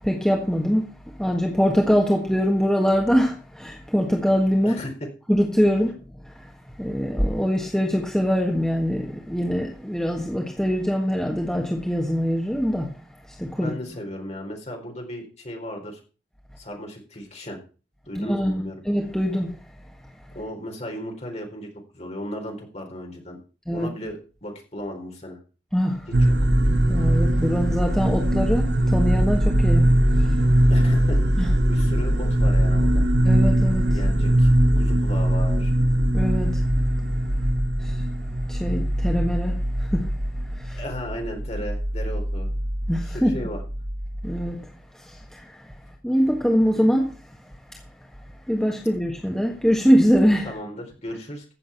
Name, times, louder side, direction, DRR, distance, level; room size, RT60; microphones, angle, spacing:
voice 1, 0.0-4.8 5.3-5.9 6.2-6.5 6.8-13.0 13.3-13.7 18.1-19.6 23.7-23.9 25.7-26.1 26.9-30.3 31.4-31.5 33.2-34.0 36.1-36.6 37.8-38.0 38.5-40.1 40.6-40.8 42.9-43.4 44.2-44.7 44.9-45.7 46.0-47.1 48.5-50.5, equal, 5° left, 1.6 m, -23 dB
voice 2, 13.6-16.0 16.6-17.6 18.1-18.8 20.3-21.7 21.9-23.4 23.7-25.4 26.2-26.3 30.7-33.0 33.9-34.5 34.8-35.7 40.7-42.5 43.1-43.6 50.5-51.6, equal, 35° left, 4.3 m, -35 dB
sound 1, 26.1-44.5, right 1 dB, 60° right, 1.4 m, -21 dB
15.0 x 7.2 x 5.8 m
head